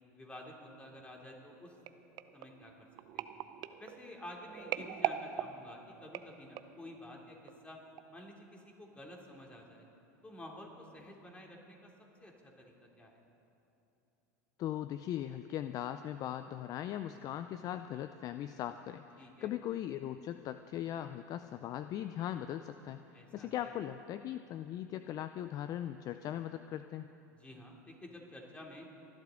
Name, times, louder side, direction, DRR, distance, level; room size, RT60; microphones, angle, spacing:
voice 1, 0.1-1.7 2.3-2.9 3.1-3.4 3.8-7.8 8.1-9.8 10.2-11.9 12.2-13.2 19.2-19.6 23.1-23.7 27.4-28.9, left 1 dB, 15° left, 0 dB, 2.9 m, -51 dB
sound 1, 1.9-6.9 7.5-7.7 8.0-8.1, right 12 dB, 50° right, 0.6 m, -41 dB
voice 2, 14.6-23.1 23.3-27.1, left 11 dB, 40° left, 10 dB, 0.4 m, -39 dB
28.5 x 11.5 x 3.8 m, 2.8 s
supercardioid pair, 105°, 9 cm